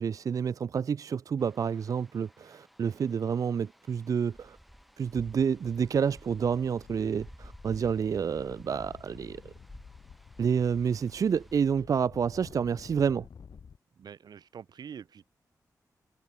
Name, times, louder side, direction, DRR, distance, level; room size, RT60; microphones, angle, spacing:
voice 1, 0.0-4.6 5.0-9.5 10.4-13.3, right 7 dB, 55° right, 0.4 m, -29 dB
sound 1, 1.4-11.6, equal, ahead, 5.1 m, -54 dB
sound 2, 5.0-5.1 5.3-13.8, left 6 dB, 70° left, 4.8 m, -52 dB
voice 2, 14.0-15.3, right 7 dB, 90° right, 2.5 m, -45 dB
wide cardioid pair, 115°, 7 cm